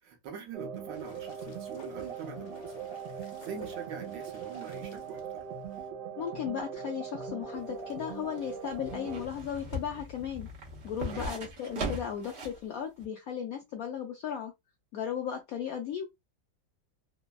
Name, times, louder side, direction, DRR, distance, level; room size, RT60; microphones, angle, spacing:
voice 1, 0.0-2.9 3.1-5.5 11.0-11.3, right 7 dB, 70° right, 1.3 m, -44 dB
sound 1, 0.5-9.3, right 6 dB, 90° right, 1.5 m, -40 dB
sound 2, 0.9-5.9, left 2 dB, 55° left, 1.2 m, -56 dB
voice 2, 6.2-10.5 10.8-14.5 14.9-16.1, left 8 dB, 75° left, 0.8 m, -36 dB
sound 3, 7.5-12.6 13.0-13.1, right 1 dB, 55° right, 0.7 m, -39 dB
3.4 x 2.1 x 2.2 m
omnidirectional pair, 2.1 m